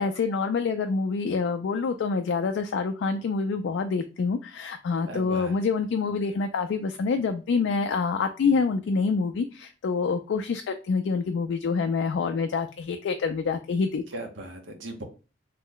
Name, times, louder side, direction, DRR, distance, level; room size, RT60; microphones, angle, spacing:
voice 1, 0.0-14.0, left 4 dB, 75° left, 6 dB, 0.3 m, -26 dB
voice 2, 5.0-5.6 14.1-15.0, right 2 dB, 85° right, 4 dB, 0.8 m, -38 dB
3.1 x 2.1 x 3.6 m, 0.33 s
head